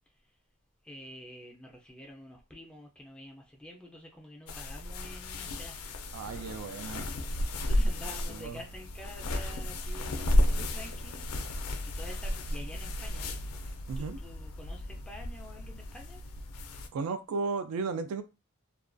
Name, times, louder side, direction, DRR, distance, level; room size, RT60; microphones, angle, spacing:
voice 1, 0.1-0.4 0.8-6.0 7.6-11.3 11.8-16.2, equal, 5° left, 0.3 m, -49 dB
sound 1, 4.5-16.9, left 1 dB, 80° left, 0.4 m, -33 dB
voice 2, 6.1-7.1 8.3-8.6 13.9-14.2 16.9-18.2, right 4 dB, 75° right, 0.3 m, -34 dB
2.3 x 2.2 x 2.4 m
head